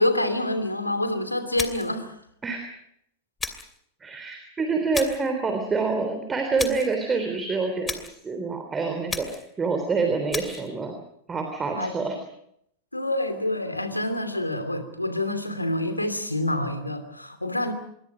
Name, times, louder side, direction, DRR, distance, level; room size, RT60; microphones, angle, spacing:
voice 1, 0.0-2.1 5.0-5.1 11.7-11.9 12.9-17.7, left 1 dB, 85° left, 9 dB, 2.8 m, -27 dB
sound 1, 1.6-2.0 3.4-3.8 4.9-5.3 6.6-7.0 7.9-8.2 9.1-9.5 10.3-10.7, left 4 dB, 15° left, 2.6 m, -33 dB
voice 2, 4.0-10.9 11.3-12.2, right 4 dB, 15° right, 5 dB, 3.5 m, -27 dB
26.5 x 23.0 x 5.2 m, 0.72 s
figure-of-eight pair, 90°, 0 cm